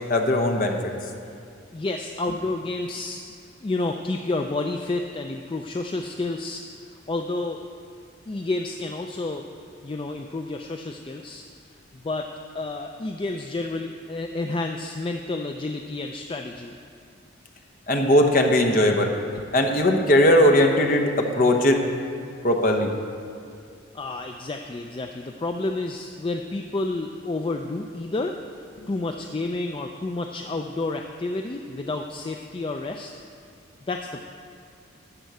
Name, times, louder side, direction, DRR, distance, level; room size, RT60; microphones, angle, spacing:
voice 1, 0.1-0.9 17.9-21.8 22.4-22.9, left 1 dB, 45° left, 3 dB, 0.9 m, -19 dB
voice 2, 1.7-3.2 3.6-6.6 7.1-7.6 8.3-9.4 9.8-11.4 11.9-12.3 12.5-16.8 23.9-28.4 28.9-33.1 33.9-34.2, left 2 dB, 25° left, 4 dB, 0.3 m, -30 dB
13.0 x 4.5 x 8.1 m, 2.3 s
head